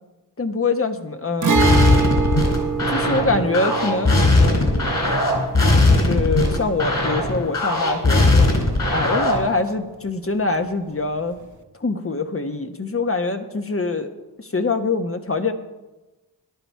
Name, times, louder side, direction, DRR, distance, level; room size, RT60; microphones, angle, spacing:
voice 1, 0.4-1.6 2.9-4.9 5.9-8.5 8.9-11.4 11.8-14.1 14.4-15.5, left 3 dB, 35° left, 7 dB, 1.2 m, -24 dB
Guitar, 1.4-9.0 9.3-9.4 11.4-11.5, right 4 dB, 45° right, 1.3 m, -26 dB
sound 1, 1.6-9.5, left 2 dB, 55° left, 4.0 m, -18 dB
13.0 x 10.5 x 4.7 m, 1.1 s
cardioid pair, 45°, 40 cm